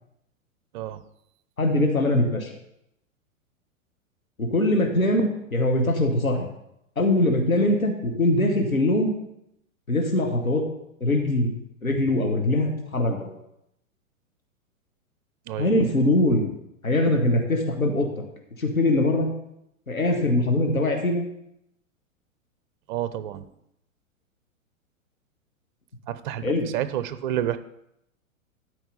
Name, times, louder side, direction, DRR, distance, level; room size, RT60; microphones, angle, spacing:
voice 1, 1.6-2.5 4.4-6.5 7.0-9.1 9.9-10.6 11.0-11.5 11.8-13.3 15.6-16.5 16.8-18.1 18.6-19.3 19.9-21.3 26.4-26.7, left 1 dB, 90° left, 3 dB, 1.5 m, -22 dB
voice 2, 22.9-23.5 26.1-27.6, right 11 dB, 35° right, 13 dB, 0.6 m, -29 dB
12.5 x 4.9 x 5.4 m, 0.79 s
figure-of-eight pair, 105°, 41 cm